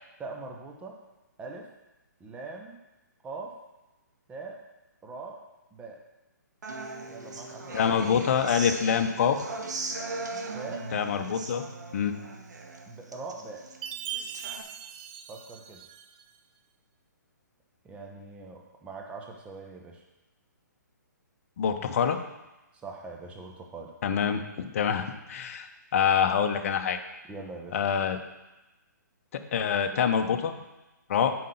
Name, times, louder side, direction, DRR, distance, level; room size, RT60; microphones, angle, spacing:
voice 1, 0.2-1.0 1.4-1.7 2.2-2.8 3.2-3.5 4.3-4.6 5.0-5.4 5.7-6.0 7.1-7.9 10.5-10.9 12.9-13.6 15.3-15.8 17.8-20.0 22.7-23.9 27.3-27.9, right 3 dB, 10° right, 1 dB, 0.8 m, -42 dB
Human voice / Acoustic guitar, 6.6-14.6, right 3 dB, 65° right, 1.0 m, -39 dB
voice 2, 7.7-9.4 10.9-11.7 11.9-12.2 21.6-22.2 24.0-25.7 25.9-27.0 27.7-28.2 29.3-30.5 31.1-31.3, left 7 dB, 45° left, 7 dB, 0.7 m, -26 dB
Chime, 13.8-16.3, right 9 dB, 30° right, 0.5 m, -39 dB
7.5 x 4.8 x 5.6 m, 1.0 s
figure-of-eight pair, 130°, 10 cm